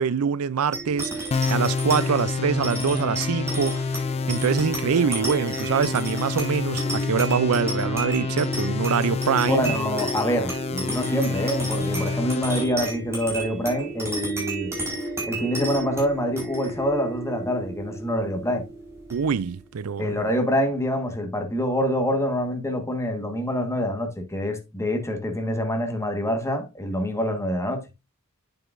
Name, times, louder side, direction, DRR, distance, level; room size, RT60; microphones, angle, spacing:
voice 1, 0.0-3.8 4.3-9.8 19.1-20.1, right 6 dB, 70° right, 0.4 m, -24 dB
sound 1, 0.7-19.6, right 2 dB, 10° right, 4.5 m, -33 dB
sound 2, 1.3-12.6, left 4 dB, 30° left, 0.3 m, -28 dB
voice 2, 9.5-14.7 15.2-18.6 20.0-27.8, equal, 15° left, 1.5 m, -26 dB
8.7 x 7.7 x 2.5 m
head